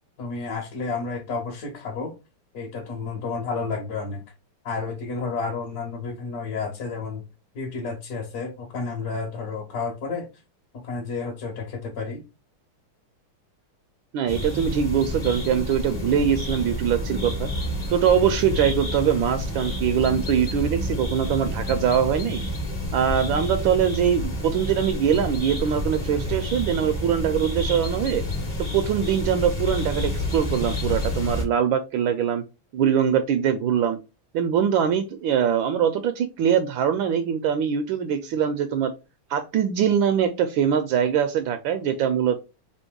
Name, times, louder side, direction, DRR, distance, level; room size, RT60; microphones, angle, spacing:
voice 1, 0.2-2.1 2.5-4.2 4.6-7.3 7.5-10.3 10.7-12.2, left 4 dB, 55° left, 0 dB, 1.2 m, -31 dB
voice 2, 14.1-17.5 17.9-22.4 22.9-28.2 28.7-32.4 32.7-34.0 34.3-38.9 39.3-42.4, right 8 dB, 75° right, 8 dB, 1.2 m, -23 dB
sound 1, 14.3-31.5, left 1 dB, 30° left, 0.7 m, -29 dB
3.5 x 2.8 x 4.4 m, 0.28 s
omnidirectional pair, 2.4 m